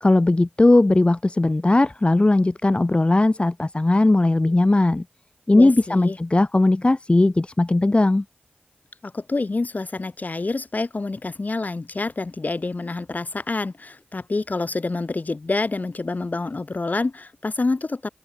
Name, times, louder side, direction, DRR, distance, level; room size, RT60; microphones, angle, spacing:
voice 1, 0.0-5.0 5.5-8.2, left 2 dB, 30° left, 0.7 m, -18 dB
voice 2, 5.5-6.2 9.0-18.1, left 3 dB, 45° left, 1.8 m, -27 dB
open air
cardioid pair, 45°, 4 cm